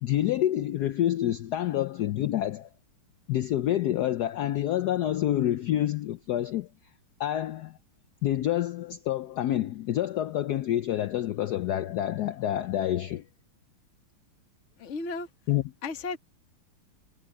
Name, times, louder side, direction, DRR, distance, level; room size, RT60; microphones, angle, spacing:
voice 1, 0.0-2.7 3.3-6.7 7.2-7.8 8.2-13.2 15.5-15.6, left 12 dB, 85° left, 0.8 m, -27 dB
voice 2, 14.8-15.3 15.8-16.2, left 3 dB, 40° left, 1.5 m, -34 dB
omnidirectional pair, 2.4 m